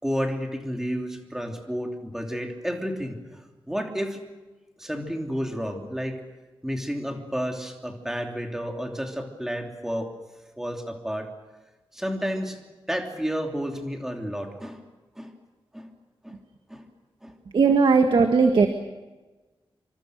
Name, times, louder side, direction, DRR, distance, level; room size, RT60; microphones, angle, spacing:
voice 1, 0.0-3.4 3.7-4.2 4.8-6.2 6.6-10.1 10.6-11.3 11.9-12.6 12.9-14.8 15.2-15.3 15.7-15.9 16.2-16.4 16.7-16.9 17.2-17.3, equal, 5° right, 2 dB, 3.0 m, -31 dB
voice 2, 17.5-18.7, right 4 dB, 60° right, 6 dB, 1.8 m, -18 dB
27.0 x 25.5 x 6.6 m, 1.2 s
wide cardioid pair, 175°, 9 cm